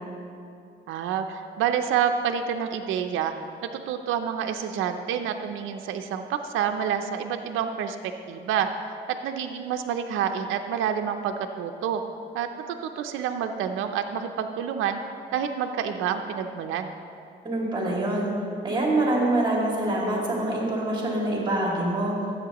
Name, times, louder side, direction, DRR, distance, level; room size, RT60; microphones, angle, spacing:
voice 1, 0.9-3.3 3.7-8.7 9.1-12.0 12.3-15.0 15.3-16.9, right 8 dB, 90° right, 6 dB, 0.5 m, -28 dB
voice 2, 17.4-18.3 18.6-22.2, right 1 dB, 25° right, -3 dB, 2.3 m, -25 dB
13.0 x 7.9 x 2.9 m, 2.5 s
cardioid pair, 90°, 20 cm